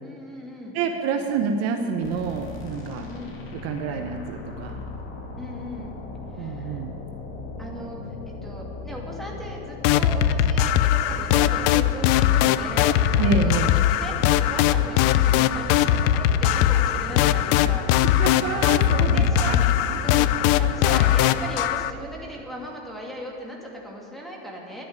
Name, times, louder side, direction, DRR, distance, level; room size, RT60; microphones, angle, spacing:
voice 1, 0.0-0.8 2.8-3.4 5.4-5.9 6.3-6.8 7.6-8.0 8.3-17.9 18.9-19.5 20.0-24.9, equal, ahead, -2 dB, 2.5 m, -37 dB
voice 2, 0.7-3.1 3.5-4.8 6.4-6.9 13.2-13.7 18.0-19.6 19.9-20.1, right 5 dB, 50° right, 4 dB, 1.1 m, -28 dB
sound 1, 2.0-21.6, left 3 dB, 40° left, 2.4 m, -37 dB
sound 2, 9.8-21.9, left 11 dB, 60° left, 0.6 m, -20 dB
11.5 x 10.5 x 8.7 m, 3.0 s
supercardioid pair, 135°, 32 cm